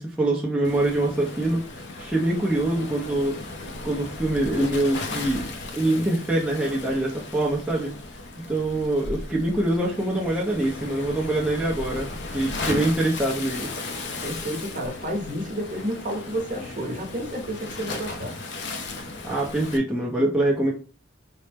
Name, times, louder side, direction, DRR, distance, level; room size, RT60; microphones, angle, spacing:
voice 1, 0.0-3.4 3.8-5.4 5.7-7.9 8.5-13.7 19.2-20.7, right 1 dB, 5° right, -4 dB, 0.5 m, -24 dB
Waves surf, 0.6-19.8, left 2 dB, 55° left, 0.5 m, -36 dB
voice 2, 14.2-18.4, equal, 40° right, 1 dB, 0.9 m, -31 dB
4.2 x 2.0 x 3.3 m, 0.35 s
head